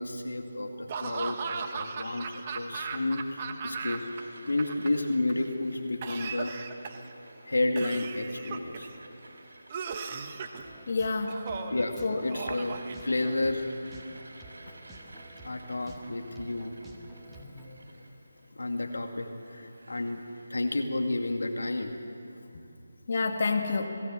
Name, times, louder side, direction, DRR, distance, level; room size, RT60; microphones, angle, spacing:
voice 1, 0.0-4.0 4.5-6.6 7.4-8.9 11.7-11.9 12.2-13.7 15.4-16.8 18.6-20.2 20.5-22.0, left 2 dB, 75° left, 4 dB, 2.3 m, -31 dB
Laughter / Cough, 0.9-4.2 4.5-5.3 6.0-7.1 7.8-9.0 9.7-10.6 11.3-11.9 12.3-13.5, right 5 dB, 30° right, 1.4 m, -37 dB
sound 1, 3.3-20.6, right 2 dB, 70° right, 4.9 m, -53 dB
sound 2, 10.6-17.7, right 1 dB, 5° right, 1.9 m, -51 dB
voice 2, 10.9-11.4 12.0-12.2 17.3-17.8 23.1-23.9, left 4 dB, 50° left, 3 dB, 2.3 m, -29 dB
29.5 x 17.5 x 7.7 m, 2.8 s
figure-of-eight pair, 155°, 0 cm